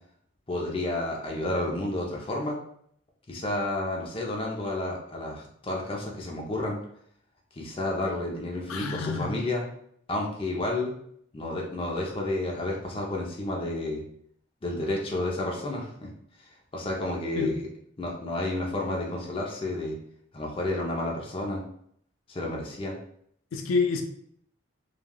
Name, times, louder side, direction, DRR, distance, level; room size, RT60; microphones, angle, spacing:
voice 1, 0.5-2.6 3.3-6.8 7.6-9.6 10.1-10.9 11.3-14.0 14.6-16.1 16.7-17.6 18.0-20.0 20.3-21.6 22.3-23.0, left 2 dB, 25° left, -1 dB, 0.5 m, -31 dB
voice 2, 8.7-9.5 17.4-17.6 23.5-24.0, left 4 dB, 85° left, 4 dB, 0.4 m, -28 dB
3.2 x 2.3 x 2.2 m, 0.67 s
head